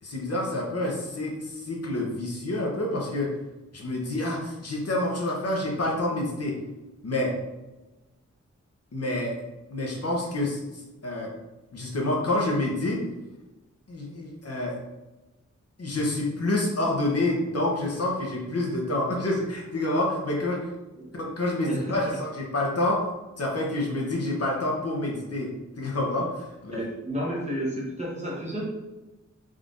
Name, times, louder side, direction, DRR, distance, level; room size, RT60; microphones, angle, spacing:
voice 1, 0.0-3.3 3.7-6.6 7.0-7.3 8.9-9.4 9.7-10.6 11.0-11.3 11.7-13.0 13.9-14.7 15.8-20.7 21.1-23.0 23.4-26.8, left 1 dB, 55° left, -2 dB, 0.8 m, -28 dB
voice 2, 21.7-22.2 26.7-28.6, equal, 20° right, -5 dB, 1.0 m, -31 dB
3.6 x 3.2 x 2.5 m, 1.1 s
wide cardioid pair, 105°, 30 cm